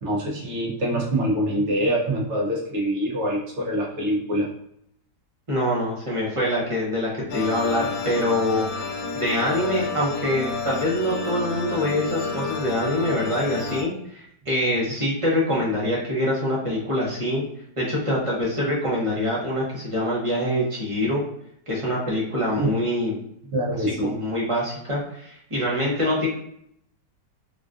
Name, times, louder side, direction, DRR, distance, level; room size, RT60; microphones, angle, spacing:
voice 1, 0.0-4.5 22.6-22.7 23.5-24.1, right 1 dB, 50° right, -3 dB, 0.9 m, -25 dB
voice 2, 5.5-8.7 9.1-17.4 17.8-21.2 21.7-23.1 23.8-26.3, left 1 dB, 30° right, -6 dB, 0.6 m, -25 dB
sound 1, 7.3-13.8, left 4 dB, 90° left, 0.7 m, -30 dB
3.6 x 2.3 x 2.5 m, 0.72 s
omnidirectional pair, 1.9 m